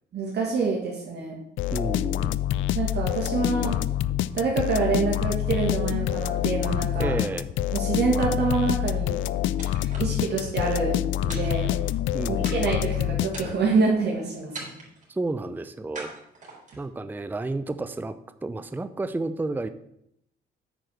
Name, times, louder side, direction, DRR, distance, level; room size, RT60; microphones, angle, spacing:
voice 1, 0.1-1.3 2.7-3.7 4.3-7.1 7.7-9.2 10.0-10.9 11.2-11.7 12.3-14.7, right 4 dB, 60° right, -3 dB, 2.2 m, -26 dB
sound 1, 1.6-13.8, left 12 dB, 75° left, 0.4 m, -27 dB
voice 2, 1.7-2.4 7.0-7.5 12.1-12.6 15.1-16.1 16.8-18.2 18.4-19.7, right 2 dB, 10° right, 11 dB, 0.5 m, -31 dB
sound 2, 9.6-10.5 11.3-12.1 12.4-12.9 13.3-13.9 14.5-15.1 15.9-16.9, right 3 dB, 40° right, 3.7 m, -42 dB
9.0 x 4.7 x 6.4 m, 0.77 s
cardioid pair, 90°, 20 cm